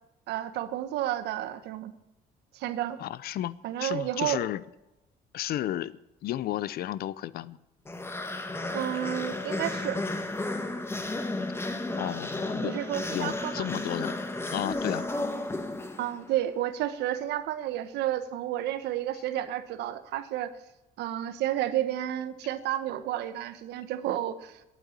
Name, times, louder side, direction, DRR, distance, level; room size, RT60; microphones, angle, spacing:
voice 1, 0.3-1.9 2.5-3.0 3.6-4.4 8.7-10.0 12.6-13.7 16.0-20.5 21.0-24.6, right 12 dB, 80° right, 11 dB, 1.2 m, -31 dB
voice 2, 3.0-4.6 5.3-7.6 12.0-12.7 13.1-14.2 14.5-15.1, left 13 dB, 65° left, 19 dB, 0.7 m, -33 dB
sound 1, 7.9-16.3, left 2 dB, 15° left, 1.5 m, -33 dB
11.5 x 9.0 x 9.9 m, 0.95 s
cardioid pair, 110°, 17 cm